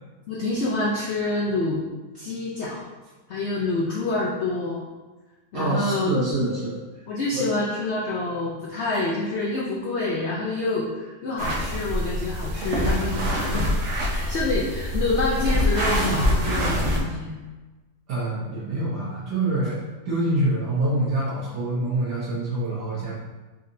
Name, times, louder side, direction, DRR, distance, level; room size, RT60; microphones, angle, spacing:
voice 1, 0.3-1.8 2.1-2.8 3.3-4.8 5.5-6.1 7.1-13.8 14.0-17.4, left 2 dB, 80° left, -5 dB, 0.6 m, -27 dB
voice 2, 5.5-6.8 7.3-7.4 18.1-23.1, right 1 dB, 70° right, -8 dB, 1.7 m, -26 dB
sound 1, 11.4-17.0, equal, 55° right, 1.0 m, -25 dB
4.2 x 4.0 x 2.6 m, 1.2 s
omnidirectional pair, 1.9 m